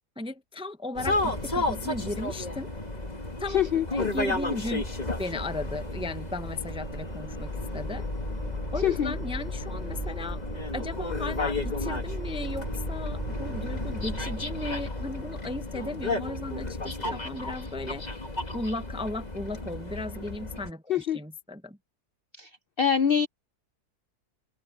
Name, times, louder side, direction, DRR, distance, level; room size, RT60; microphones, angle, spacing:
voice 1, 0.2-2.7 3.4-3.6 3.9-4.8 5.2-8.1 8.7-10.4 10.7-18.2 18.5-21.8, left 2 dB, 5° right, 0.5 m, -36 dB
sound 1, 1.0-20.7, left 2 dB, 25° left, 2.2 m, -33 dB
sound 2, 3.1-14.8, right 1 dB, 35° right, 8.3 m, -41 dB
voice 2, 3.5-3.8 8.8-9.1 20.9-21.2 22.4-22.5 22.8-23.3, left 8 dB, 60° left, 0.6 m, -24 dB
omnidirectional pair, 1.7 m